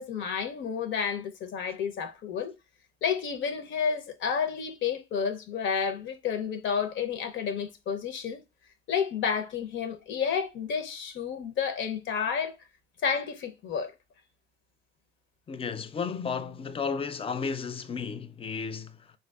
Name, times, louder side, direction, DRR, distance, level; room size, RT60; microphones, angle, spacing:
voice 1, 0.0-2.5 3.0-8.4 8.9-12.6 13.0-13.9, left 6 dB, 70° left, 0.6 m, -30 dB
voice 2, 15.5-19.1, left 5 dB, 30° left, 0.4 m, -33 dB
3.5 x 2.6 x 2.2 m
cardioid pair, 90°, 20 cm